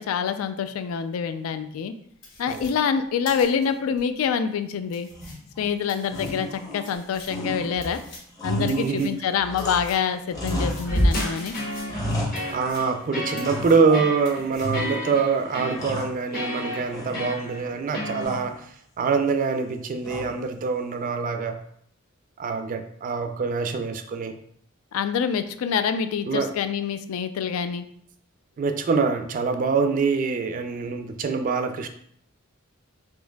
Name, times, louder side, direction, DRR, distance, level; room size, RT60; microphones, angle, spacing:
voice 1, 0.0-1.9 2.4-5.1 5.6-8.0 8.4-11.6 24.9-27.8, left 7 dB, 85° left, 10 dB, 0.3 m, -26 dB
sound 1, 2.2-4.0 4.5-4.6 4.9-10.1 10.5-13.1 13.3-14.0 14.3-14.8, left 2 dB, 60° left, 1.3 m, -47 dB
sound 2, 5.1-5.7 6.1-7.0 7.3-10.0 10.3-11.3 11.6-13.0 13.4-14.1 14.6-15.2 15.5-16.6 16.9-17.6 18.2-18.6 20.0-20.6, equal, 15° left, 0.6 m, -33 dB
voice 2, 8.5-9.1 12.5-18.7 19.0-21.6 22.4-24.4 26.3-26.5 28.6-31.9, right 5 dB, 40° right, 7 dB, 0.3 m, -25 dB
sound 3, 10.9-18.3, equal, 45° left, 0.8 m, -30 dB
4.5 x 2.5 x 2.2 m, 0.66 s
head